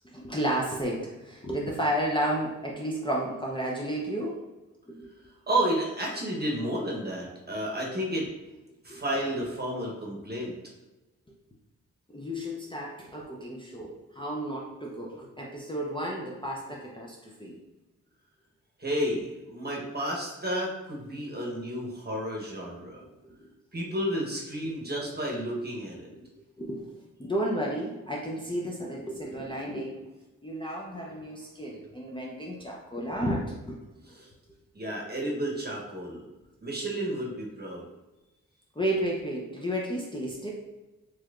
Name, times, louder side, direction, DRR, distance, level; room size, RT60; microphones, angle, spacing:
voice 1, 0.1-4.4 5.0-5.1 8.9-9.0 12.1-17.6 23.2-23.4 26.1-26.3 26.6-26.8 27.2-30.0 30.4-33.8 38.8-40.5, equal, 15° left, -3 dB, 0.6 m, -32 dB
voice 2, 5.5-8.3 8.8-10.5 18.8-23.0 23.7-26.1 34.1-34.3 34.7-36.2 36.6-37.8, right 1 dB, 30° right, -2 dB, 1.1 m, -31 dB
3.1 x 3.0 x 2.4 m, 1.1 s
supercardioid pair, 45°, 34 cm